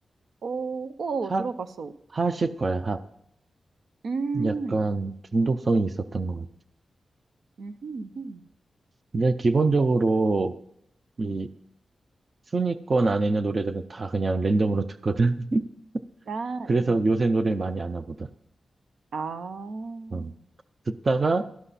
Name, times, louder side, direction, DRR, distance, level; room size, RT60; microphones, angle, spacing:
voice 1, 0.4-1.9 4.0-4.9 7.6-8.5 11.2-11.4 16.3-17.2 19.1-20.4, right 4 dB, 80° right, 11 dB, 0.7 m, -33 dB
voice 2, 2.1-3.0 4.3-6.5 9.1-10.5 11.2-11.5 12.5-15.6 16.7-18.3 20.1-20.3 20.9-21.4, right 3 dB, 35° right, 12 dB, 0.6 m, -24 dB
12.5 x 11.5 x 4.2 m, 0.72 s
wide cardioid pair, 150°, 0 cm